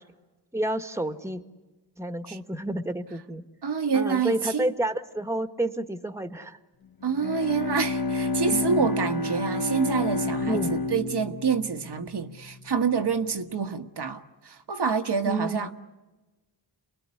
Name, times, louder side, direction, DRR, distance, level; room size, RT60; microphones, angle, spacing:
voice 1, 0.5-1.4 2.0-3.4 3.9-6.6 8.5-8.9 10.5-10.8 15.3-15.7, right 1 dB, 5° right, 1.7 m, -30 dB
voice 2, 3.6-4.7 7.0-15.7, right 5 dB, 65° right, 1.5 m, -27 dB
Bowed string instrument, 7.0-12.7, left 2 dB, 55° left, 1.4 m, -29 dB
28.0 x 21.0 x 9.8 m
cardioid pair, 65°, 43 cm